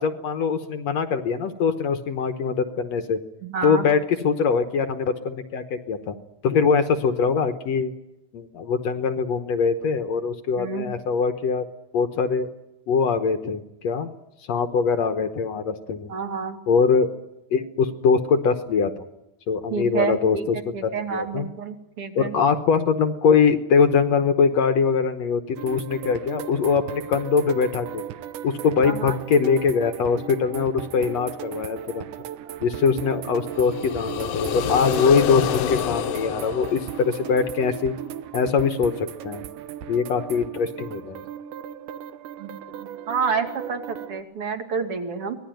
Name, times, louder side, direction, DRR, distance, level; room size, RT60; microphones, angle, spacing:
voice 1, 0.0-3.2 3.6-6.1 6.4-7.9 8.3-11.7 11.9-12.5 12.9-14.1 14.5-16.1 16.7-17.1 17.5-19.0 19.5-21.5 22.2-28.0 28.4-32.1 32.6-37.9 38.3-39.4 39.9-41.2, left 5 dB, 60° left, 9 dB, 2.0 m, -22 dB
voice 2, 3.4-3.9 10.6-10.9 16.1-16.6 19.7-20.5 20.7-22.3 28.8-29.1 42.4-45.4, right 5 dB, 45° right, 6 dB, 3.1 m, -29 dB
sound 1, 25.6-44.2, right 10 dB, 75° right, 2.5 m, -37 dB
sound 2, 33.5-37.6, left 10 dB, 85° left, 2.7 m, -28 dB
25.0 x 19.0 x 9.2 m, 0.90 s
omnidirectional pair, 3.9 m